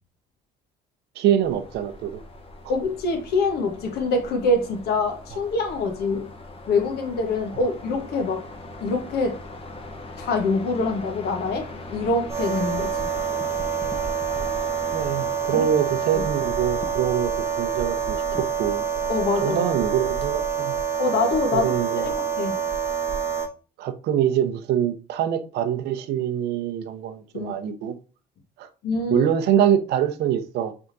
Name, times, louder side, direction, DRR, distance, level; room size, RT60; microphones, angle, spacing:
voice 1, 1.2-2.2 7.5-7.7 14.9-18.9 19.4-20.7 21.5-22.1 23.8-28.0 28.6-28.7 29.1-30.7, right 10 dB, 75° right, 0.7 m, -24 dB
sound 1, 1.4-20.8, left 2 dB, 35° left, 0.9 m, -41 dB
voice 2, 2.7-6.3 6.7-8.5 8.8-9.4 10.2-13.1 15.5-15.6 19.1-19.6 21.0-22.6 27.3-27.6 28.8-29.3, left 3 dB, 70° left, 1.2 m, -25 dB
sound 2, 12.3-23.5, right 7 dB, 15° right, 0.8 m, -27 dB
4.6 x 3.5 x 2.6 m
cardioid pair, 110°, 17 cm